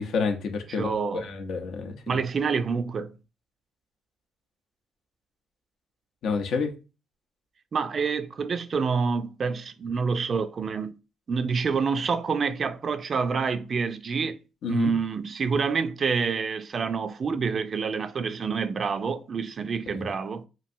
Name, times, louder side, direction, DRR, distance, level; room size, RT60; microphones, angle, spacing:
voice 1, 0.0-2.2 6.2-6.7 14.6-14.9 19.9-20.0, left 5 dB, 70° left, 0.6 m, -29 dB
voice 2, 0.7-1.3 2.1-3.2 7.7-10.9 11.3-14.4 14.7-20.5, right 5 dB, 45° right, 0.3 m, -27 dB
2.9 x 2.5 x 2.6 m
cardioid pair, 90°, 0 cm